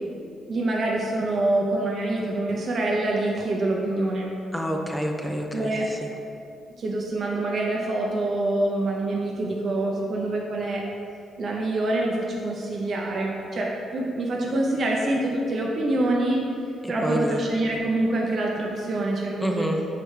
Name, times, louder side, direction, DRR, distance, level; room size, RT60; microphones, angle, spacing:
voice 1, 0.5-4.4 5.5-5.9 6.8-10.8 11.4-16.4 16.9-19.7, right 2 dB, 45° right, -2 dB, 0.6 m, -26 dB
voice 2, 4.5-6.1 16.8-17.5 19.4-19.9, equal, ahead, 2 dB, 0.5 m, -28 dB
6.4 x 4.8 x 3.2 m, 2.4 s
cardioid pair, 145°, 0 cm